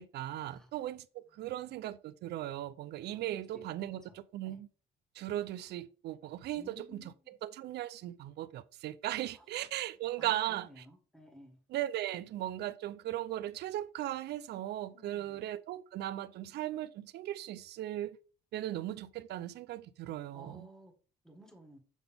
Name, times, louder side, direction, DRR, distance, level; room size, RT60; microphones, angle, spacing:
voice 1, 0.0-4.7 5.1-10.9 11.7-18.2 18.5-20.7, right 13 dB, 70° right, 0.4 m, -38 dB
voice 2, 3.1-3.4 4.1-4.2 4.4-4.6 6.6-7.3 9.3-9.4 9.7-9.8 10.2-11.6 14.9-15.4 20.3-20.9 21.2-21.8, equal, 5° left, 1.5 m, -56 dB
7.1 x 3.9 x 3.4 m
cardioid pair, 120°, 18 cm